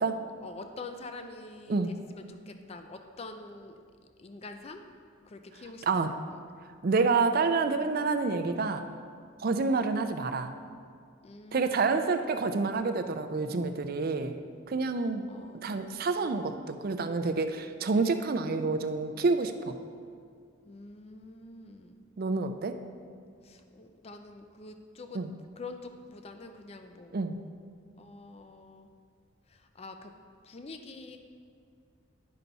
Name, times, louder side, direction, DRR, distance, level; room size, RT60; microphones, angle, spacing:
voice 1, 0.4-3.8 4.2-4.8 5.3-6.4 11.2-12.0 15.3-16.0 20.7-22.0 23.4-25.3 25.6-27.2 28.0-28.9 29.5-30.1 30.4-31.2, left 3 dB, 30° left, 6 dB, 0.4 m, -46 dB
voice 2, 5.8-6.1 6.8-8.9 9.4-10.5 11.5-15.2 15.6-19.7 22.2-22.7 25.1-25.3 27.1-27.4, right 4 dB, 45° right, 8 dB, 0.4 m, -28 dB
10.5 x 5.6 x 4.0 m, 2.2 s
head